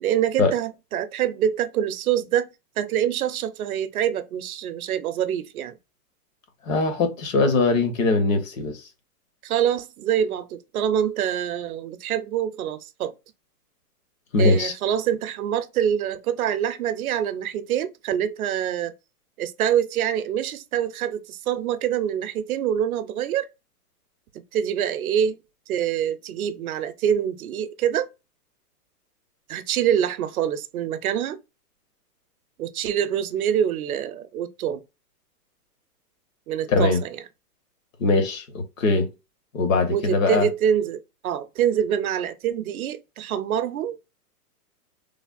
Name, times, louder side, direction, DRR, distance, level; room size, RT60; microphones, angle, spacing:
voice 1, 0.0-2.5 2.8-5.7 9.4-13.1 14.4-18.9 19.4-23.5 24.3-25.4 25.7-28.1 29.5-31.4 32.6-34.8 36.5-37.2 39.9-44.0, right 9 dB, 65° right, 0.5 m, -25 dB
voice 2, 6.7-8.9 14.3-14.7 36.7-37.0 38.0-39.1 39.5-40.5, left 3 dB, 55° left, 1.0 m, -21 dB
3.3 x 2.0 x 2.4 m
hypercardioid pair, 150°, 47 cm